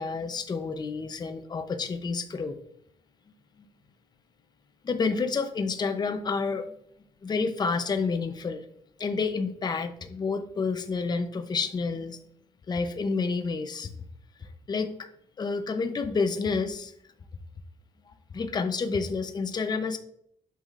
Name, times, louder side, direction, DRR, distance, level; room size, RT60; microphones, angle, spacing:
voice 1, 0.0-2.6 4.8-6.7 7.2-8.6 9.0-12.2 12.7-13.9 14.4-15.1 15.4-16.9 18.1-20.0, left 4 dB, 35° left, 7 dB, 0.6 m, -29 dB
8.3 x 5.6 x 2.5 m, 0.67 s
cardioid pair, 105°, 13 cm